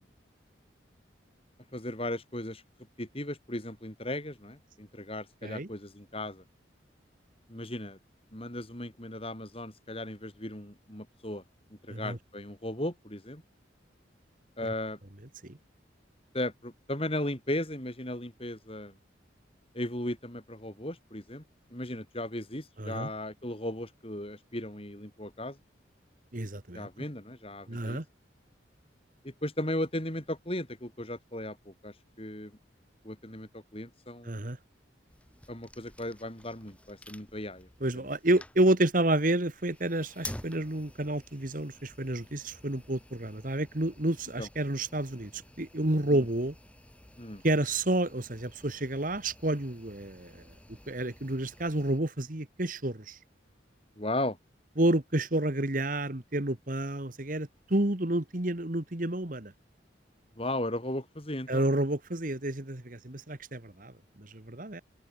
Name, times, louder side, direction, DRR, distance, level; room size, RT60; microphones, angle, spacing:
voice 1, 1.7-2.6 3.0-6.4 7.5-8.0 8.3-11.4 11.9-13.4 14.6-15.0 16.3-18.9 19.7-21.4 21.7-25.6 26.7-28.0 29.2-32.5 33.0-34.5 35.5-37.7 44.4-44.5 46.1-46.2 47.2-47.4 54.0-54.4 60.4-61.6, left 1 dB, 30° left, 4.5 m, -36 dB
voice 2, 22.8-23.1 26.3-26.9 27.7-28.1 34.2-34.6 37.8-46.6 47.4-50.5 50.9-53.2 54.8-59.5 61.5-64.8, right 1 dB, 45° right, 1.8 m, -30 dB
sound 1, 35.1-52.0, left 1 dB, 5° left, 5.9 m, -51 dB
head